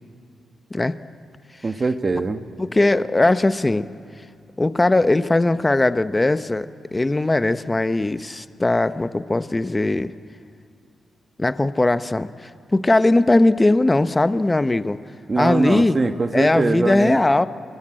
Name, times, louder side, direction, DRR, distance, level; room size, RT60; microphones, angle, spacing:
voice 1, 1.6-2.4 15.3-17.2, right 3 dB, 35° right, 8 dB, 1.3 m, -22 dB
voice 2, 2.6-3.9 4.6-10.1 11.4-15.0 15.4-16.0 16.3-17.5, left 2 dB, 20° left, 12 dB, 0.8 m, -19 dB
27.5 x 21.0 x 8.9 m, 2.3 s
cardioid pair, 85°, 0 cm